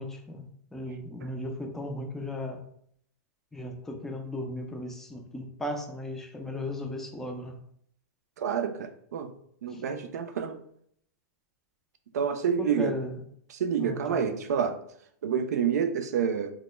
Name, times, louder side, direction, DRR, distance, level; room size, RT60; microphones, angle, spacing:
voice 1, 0.0-2.6 3.5-7.5 9.7-9.8 12.6-13.2 13.8-14.3, left 1 dB, 5° left, 3 dB, 0.3 m, -36 dB
voice 2, 8.4-9.3 9.6-10.6 12.1-12.9 13.5-14.7 15.2-16.5, right 7 dB, 85° right, 8 dB, 0.3 m, -28 dB
2.1 x 2.1 x 2.9 m, 0.67 s
hypercardioid pair, 130°, 9 cm